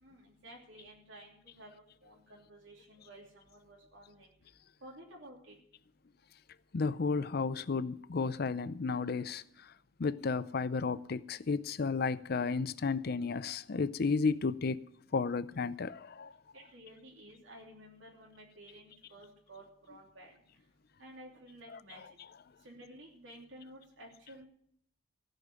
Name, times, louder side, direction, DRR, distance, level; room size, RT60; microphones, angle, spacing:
voice 1, 0.0-1.7 2.0-4.3 4.8-5.5 16.5-20.3 21.0-22.0 22.6-24.5, right 1 dB, 85° right, 3.1 m, -53 dB
voice 2, 6.7-9.4 10.0-14.8 15.1-16.3, left 4 dB, 55° left, 0.5 m, -33 dB
16.0 x 5.4 x 9.6 m
head